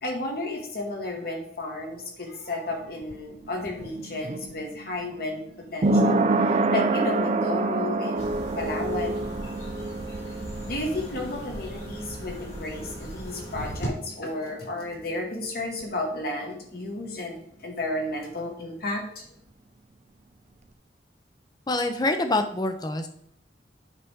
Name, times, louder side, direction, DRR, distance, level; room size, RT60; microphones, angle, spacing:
voice 1, 0.0-9.3 10.7-19.3, left 1 dB, 55° left, 1 dB, 1.8 m, -33 dB
sound 1, 2.7-14.3 14.5-14.6, right 2 dB, 40° right, 0.5 m, -28 dB
sound 2, 8.1-13.9, right 1 dB, 85° left, 3.6 m, -38 dB
voice 2, 21.7-23.1, left 2 dB, 20° left, 7 dB, 0.8 m, -25 dB
8.3 x 5.9 x 3.7 m, 0.70 s
head